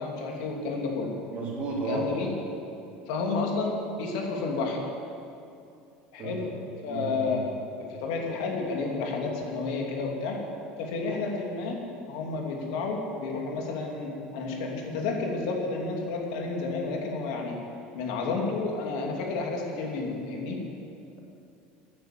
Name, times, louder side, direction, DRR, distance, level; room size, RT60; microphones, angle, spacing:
voice 1, 0.0-1.1 1.9-2.3 3.1-4.8 6.1-6.5 6.8-7.4 7.8-10.4 10.8-11.8 12.1-17.6 17.9-20.6, left 3 dB, 75° left, 0 dB, 2.7 m, -31 dB
voice 2, 1.3-2.0 6.2-6.4 6.9-7.4, right 4 dB, 35° right, -2 dB, 3.2 m, -33 dB
15.5 x 9.5 x 7.7 m, 2.6 s
cardioid pair, 175°, 4 cm